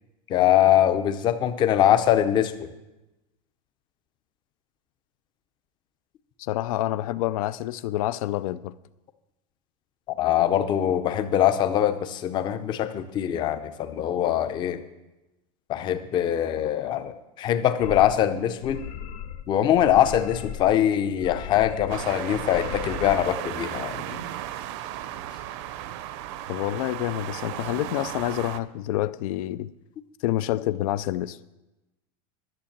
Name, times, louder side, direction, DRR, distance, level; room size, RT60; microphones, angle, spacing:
voice 1, 0.3-2.7 10.2-14.8 15.7-18.8 19.5-24.2, left 11 dB, 25° left, 0.6 m, -23 dB
voice 2, 6.4-8.7 26.5-29.7 30.2-31.4, left 14 dB, 75° left, 0.5 m, -28 dB
sound 1, 17.8-18.2 18.6-19.5 19.7-20.7 21.1-22.1 22.3-23.2, left 9 dB, 90° left, 0.9 m, -37 dB
sound 2, 21.9-28.6, right 12 dB, 50° right, 0.6 m, -35 dB
11.5 x 7.2 x 7.2 m
supercardioid pair, 175°, 19 cm